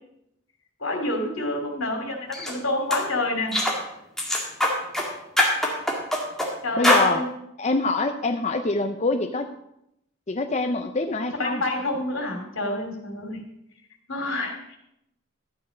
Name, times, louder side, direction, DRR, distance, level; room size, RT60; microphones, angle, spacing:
voice 1, 0.8-3.5 6.6-7.3 11.4-13.4 14.1-14.8, left 2 dB, 80° left, 3 dB, 2.8 m, -28 dB
sound 1, 2.3-2.5 2.9-3.0 3.5-3.8 4.2-5.1 5.4-6.5 6.8-7.1, left 1 dB, ahead, 1.9 m, -22 dB
voice 2, 6.8-7.2 7.6-9.5 10.3-11.6, left 3 dB, 35° left, 5 dB, 0.6 m, -25 dB
12.5 x 9.0 x 5.1 m, 0.80 s
head